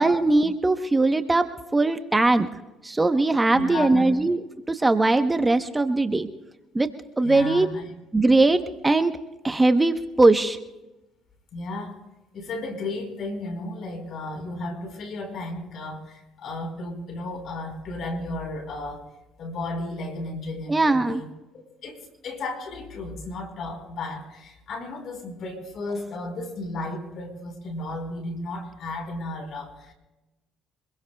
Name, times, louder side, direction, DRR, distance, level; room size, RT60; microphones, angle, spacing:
voice 1, 0.0-1.5 1.7-2.5 2.8-6.3 6.7-6.9 7.2-7.7 8.1-9.1 9.4-10.6 20.7-21.2, right 2 dB, 20° right, 8 dB, 1.0 m, -20 dB
voice 2, 3.5-4.0 7.2-7.9 11.5-12.0 12.3-19.1 19.4-21.3 21.5-22.0 22.2-29.9, left 2 dB, 60° left, 5 dB, 4.4 m, -34 dB
26.0 x 21.5 x 2.3 m, 1.0 s
supercardioid pair, 70°, 0 cm